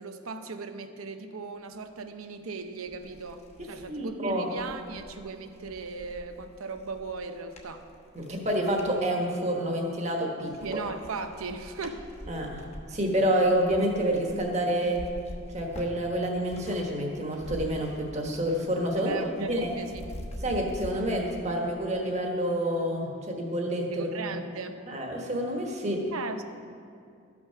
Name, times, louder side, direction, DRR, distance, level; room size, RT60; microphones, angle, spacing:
voice 1, 0.0-7.9 10.6-12.1 19.1-20.0 23.9-24.8 26.1-26.4, right 4 dB, 90° right, 8 dB, 0.7 m, -37 dB
sound 1, 2.3-2.4 2.8-9.0 9.5-10.1 10.4-16.9 17.2-18.6 18.8-20.9, equal, 30° left, 1.1 m, -45 dB
voice 2, 3.6-4.5 8.1-10.8 12.3-15.0 15.5-19.7 20.4-24.4 24.9-26.1, right 1 dB, 30° right, 0 dB, 1.3 m, -28 dB
13.5 x 6.2 x 5.7 m, 2.4 s
head